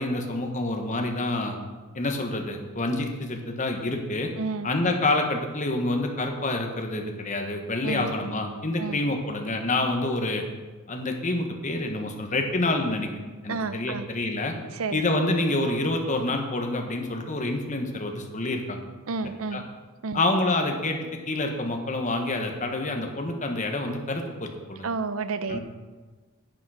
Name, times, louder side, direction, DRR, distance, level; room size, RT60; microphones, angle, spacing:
voice 1, 0.0-1.6 1.9-4.3 4.6-10.4 10.9-13.1 13.4-14.5 14.9-18.8 19.5-19.6 20.1-24.8 25.5-25.6, left 2 dB, 35° left, 3 dB, 1.3 m, -27 dB
voice 2, 4.4-4.7 7.8-8.1 8.8-9.0 13.5-14.1 14.7-15.0 19.1-19.6 20.0-20.2 24.8-25.6, right 4 dB, 80° right, 11 dB, 0.6 m, -30 dB
10.5 x 8.7 x 5.0 m, 1.3 s
head